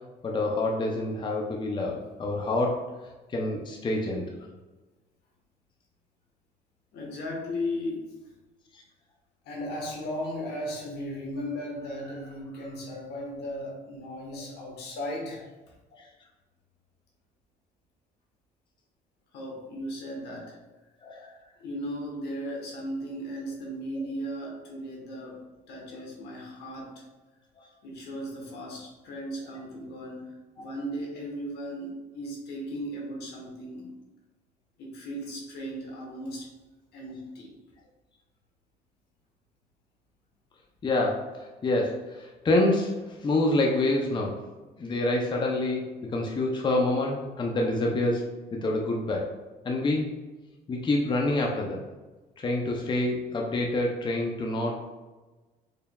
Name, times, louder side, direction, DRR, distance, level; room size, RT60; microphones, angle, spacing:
voice 1, 0.2-2.8 3.3-4.2 8.7-8.8 14.3-14.4 16.0-16.1 21.0-21.3 30.6-30.7 40.8-44.4 44.8-45.8 46.1-48.2 48.5-49.3 49.6-50.1 50.7-51.8 52.4-54.9, left 2 dB, 30° left, 0 dB, 0.6 m, -27 dB
voice 2, 6.9-8.1 9.4-15.5 19.3-20.6 21.6-25.4 25.7-27.0 27.8-33.9 34.8-36.5 36.9-37.6, equal, 75° left, -1 dB, 1.2 m, -36 dB
4.5 x 3.2 x 2.3 m, 1.2 s
cardioid pair, 110°, 17 cm